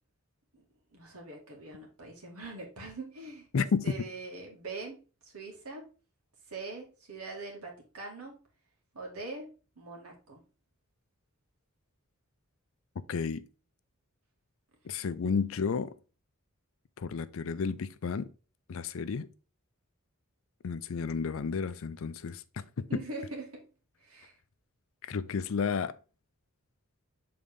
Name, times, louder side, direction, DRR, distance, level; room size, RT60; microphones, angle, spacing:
voice 1, 0.9-5.8 6.5-8.4 8.9-9.5 9.8-10.4 22.9-23.7 24.0-24.3, right 3 dB, 90° right, 2.0 m, -43 dB
voice 2, 3.5-3.9 13.1-13.4 14.8-15.9 17.0-18.3 18.7-19.3 20.6-22.6 22.9-23.0 25.0-25.9, left 5 dB, 65° left, 0.4 m, -32 dB
6.9 x 3.8 x 3.6 m
head